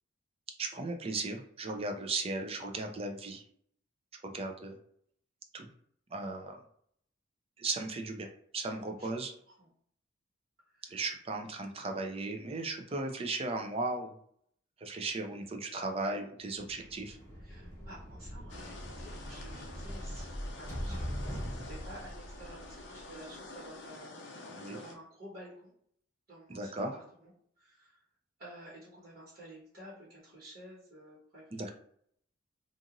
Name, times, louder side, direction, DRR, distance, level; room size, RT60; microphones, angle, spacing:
voice 1, 0.6-3.4 4.2-4.8 5.5-5.7 6.1-6.6 7.6-8.3 8.5-9.3 10.9-14.1 14.8-17.2 24.5-24.8 26.5-26.9 31.5-31.7, right 2 dB, 30° right, 3 dB, 0.4 m, -36 dB
sound 1, 16.6-23.3, equal, 15° left, 0.8 m, -42 dB
voice 2, 17.4-25.7 26.3-27.3 27.6-28.0 28.4-31.5, right 1 dB, 55° right, -6 dB, 1.2 m, -52 dB
sound 2, 18.5-25.0, left 2 dB, 65° left, 0.6 m, -48 dB
2.8 x 2.5 x 2.5 m, 0.66 s
head